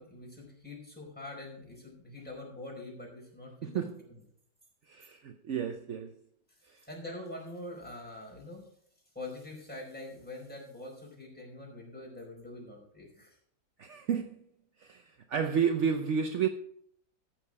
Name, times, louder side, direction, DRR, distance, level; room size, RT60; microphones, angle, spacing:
voice 1, 0.0-3.8 6.9-8.6 9.1-13.3, left 2 dB, 5° left, 4.7 m, -44 dB
voice 2, 3.6-4.0 4.9-6.1 6.7-6.8 13.8-14.4 14.8-16.5, right 7 dB, 65° right, 0.7 m, -31 dB
13.5 x 7.7 x 4.8 m
omnidirectional pair, 2.0 m